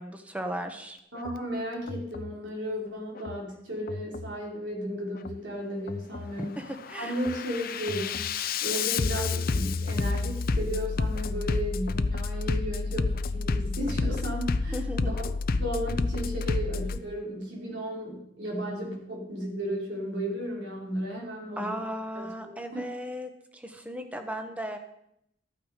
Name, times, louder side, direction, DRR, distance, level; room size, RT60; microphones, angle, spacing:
voice 1, 0.0-1.0 6.6-7.2 14.7-15.1 21.6-24.8, equal, 10° right, 6 dB, 1.2 m, -36 dB
voice 2, 1.1-6.6 7.0-8.3 8.6-21.8 22.1-22.9, equal, 75° right, -2 dB, 4.3 m, -34 dB
Bass drum, 1.2-1.4 1.9-2.4 3.2-3.4 3.9-4.4 5.2-5.4 5.9-6.4 6.8-17.0, left 4 dB, 50° left, 0.6 m, -30 dB
13.5 x 8.7 x 5.1 m, 0.77 s
head